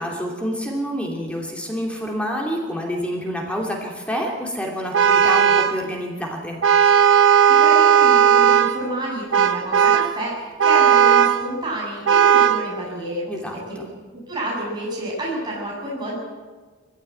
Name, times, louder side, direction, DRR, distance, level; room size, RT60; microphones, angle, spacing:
voice 1, 0.0-6.6 13.3-13.9, equal, 5° left, 0 dB, 2.7 m, -28 dB
Vehicle horn car horn honking, 4.9-5.8 6.6-8.8 9.3-10.2 10.6-11.4 12.1-12.7, right 8 dB, 85° right, 1.0 m, -15 dB
voice 2, 7.5-13.3 13.7-13.8 14.3-16.2, right 1 dB, 20° right, -5 dB, 7.1 m, -29 dB
21.5 x 15.5 x 9.2 m, 1.4 s
head